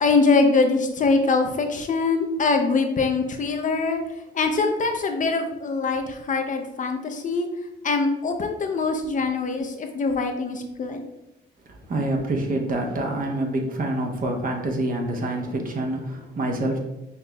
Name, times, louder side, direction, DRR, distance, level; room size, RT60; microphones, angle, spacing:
voice 1, 0.0-4.0 4.3-7.5 7.8-11.0, left 3 dB, 40° left, 4 dB, 0.5 m, -23 dB
voice 2, 11.8-16.8, right 1 dB, 45° right, 2 dB, 0.8 m, -26 dB
5.6 x 2.9 x 2.2 m, 0.94 s
cardioid pair, 90°, 20 cm